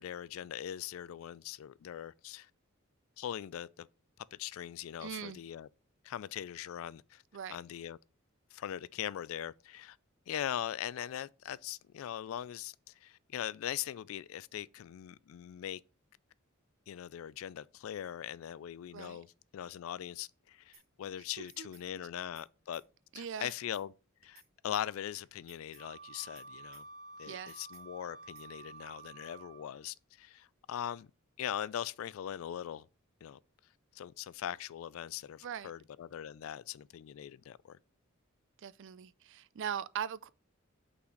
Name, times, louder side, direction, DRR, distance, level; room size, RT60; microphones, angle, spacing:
voice 1, 0.0-2.5 3.2-3.9 4.3-5.7 6.0-7.2 7.5-8.0 8.5-10.0 10.3-15.8 16.9-19.3 19.5-22.8 23.1-23.9 24.2-26.8 27.2-31.1 31.4-32.9 33.2-33.4 33.9-37.8, left 10 dB, 70° left, 0.3 m, -41 dB
voice 2, 5.0-5.4 7.3-7.6 18.9-19.2 21.4-21.7 23.1-23.5 27.2-27.6 35.4-35.7 38.6-40.3, right 8 dB, 60° right, 0.4 m, -40 dB
sound 1, 20.7-20.8 21.2-21.8 22.2-22.5 22.7-22.8 23.2-23.8 24.2-24.5 24.7-24.8 25.2-25.8 26.2-26.5 26.7-26.8 27.2-27.8 28.2-28.5, right 5 dB, 75° right, 2.0 m, -60 dB
Wind instrument woodwind instrument, 25.8-29.8, right 3 dB, 20° left, 1.0 m, -51 dB
5.7 x 4.1 x 6.2 m
head